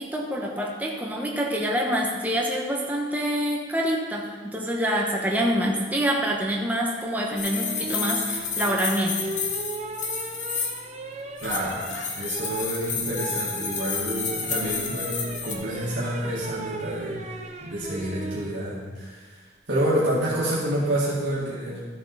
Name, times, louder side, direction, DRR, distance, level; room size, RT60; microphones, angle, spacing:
voice 1, 0.0-9.3, equal, 10° right, -1 dB, 1.0 m, -26 dB
sound 1, 7.3-18.5 20.2-20.6, right 2 dB, 35° right, 0.8 m, -37 dB
sound 2, 7.4-10.8 11.4-15.5, left 5 dB, 40° left, 1.1 m, -30 dB
Cough, 11.4-12.2 12.5-12.7 13.3-13.8 14.2-14.9, left 2 dB, 80° left, 1.0 m, -42 dB
voice 2, 11.4-11.8 12.2-17.2 17.6-21.8, right 1 dB, 70° right, -7 dB, 2.0 m, -28 dB
13.0 x 7.5 x 4.1 m, 1.5 s
head